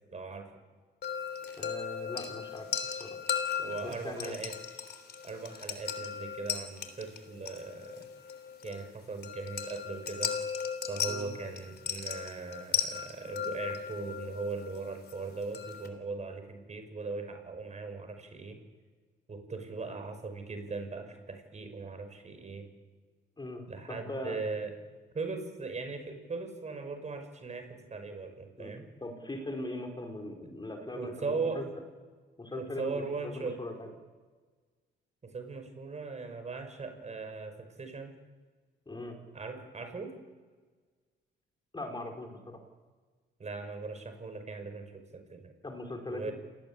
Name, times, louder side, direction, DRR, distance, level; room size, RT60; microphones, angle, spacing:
voice 1, 0.1-0.5 3.6-4.5 5.2-8.1 8.6-10.3 10.9-18.6 19.3-22.7 23.7-24.7 25.1-28.9 30.4-30.5 30.9-31.6 32.5-33.6 35.2-38.1 39.3-40.1 43.4-44.8 45.1-45.5 46.1-46.3, right 4 dB, 35° right, 7 dB, 5.6 m, -39 dB
sound 1, 1.0-15.9, left 7 dB, 55° left, 3.4 m, -37 dB
voice 2, 1.6-2.7 3.0-3.2 3.6-4.4 11.1-11.3 23.4-23.6 23.9-24.4 28.6-28.7 29.0-31.7 32.4-33.9 38.9-39.2 41.7-42.6 45.6-46.3, left 1 dB, 20° left, 3 dB, 5.0 m, -40 dB
28.0 x 19.0 x 8.7 m, 1.4 s
cardioid pair, 90°, 20 cm